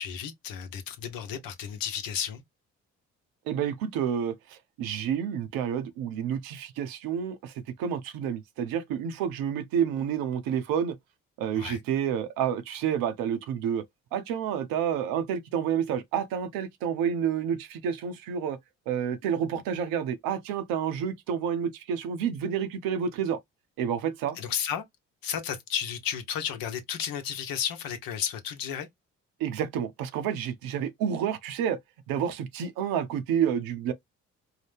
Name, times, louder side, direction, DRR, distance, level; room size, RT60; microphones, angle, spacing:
voice 1, 0.0-2.4 11.5-11.8 24.3-24.8 25.2-28.9, left 8 dB, 65° left, 1.0 m, -33 dB
voice 2, 3.5-11.0 11.4-13.8 14.1-18.6 18.9-23.4 23.8-24.4 29.4-31.8 32.1-33.9, right 8 dB, 65° right, 0.7 m, -29 dB
4.7 x 2.1 x 3.3 m
hypercardioid pair, 45°, 37 cm